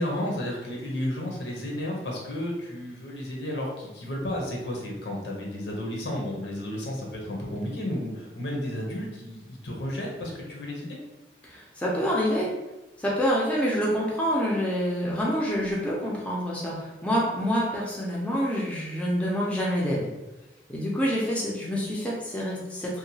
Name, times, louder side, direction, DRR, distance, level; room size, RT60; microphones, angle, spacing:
voice 1, 0.0-11.0, left 1 dB, 85° left, -2 dB, 0.8 m, -32 dB
voice 2, 11.4-12.5 13.0-20.0 20.7-23.0, equal, 5° left, -5 dB, 0.5 m, -27 dB
2.8 x 2.2 x 2.7 m, 1.0 s
head